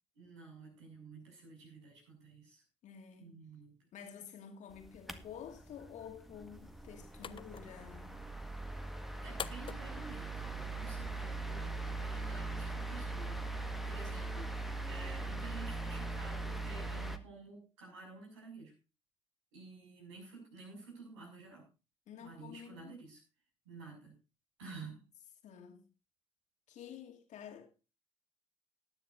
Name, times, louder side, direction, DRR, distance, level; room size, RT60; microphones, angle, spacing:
voice 1, 0.1-2.6 3.2-3.8 9.2-14.6 14.9-18.7 19.5-21.6 22.2-23.2 23.6-24.2 24.6-25.1, right 3 dB, 75° right, 6.2 m, -51 dB
voice 2, 2.8-3.4 3.9-8.1 22.1-23.0 24.6-24.9 25.4-25.9 26.7-27.7, left 8 dB, 55° left, 2.5 m, -50 dB
sound 1, 4.7-17.2, right 2 dB, ahead, 1.5 m, -41 dB
sound 2, 6.5-11.6, left 8 dB, 35° left, 0.6 m, -50 dB
19.0 x 9.8 x 2.6 m
figure-of-eight pair, 50°, 15 cm